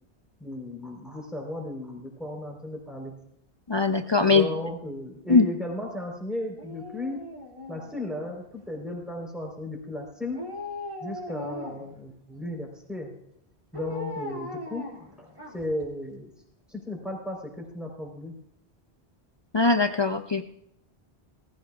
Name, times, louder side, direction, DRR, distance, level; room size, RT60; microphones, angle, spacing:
voice 1, 0.4-3.1 4.3-7.3 7.7-10.5 11.0-13.1 13.7-14.9 15.2-15.3 15.5-16.3 16.7-18.3, left 1 dB, ahead, 0 dB, 3.8 m, -35 dB
voice 2, 3.7-4.5 5.3-5.5 19.5-20.4, left 4 dB, 40° left, 6 dB, 0.4 m, -21 dB
Dog, 6.6-8.6 10.3-12.0 13.7-15.8 16.2-16.3, left 2 dB, 30° right, 2.5 m, -39 dB
18.5 x 15.0 x 2.4 m, 0.73 s
omnidirectional pair, 1.1 m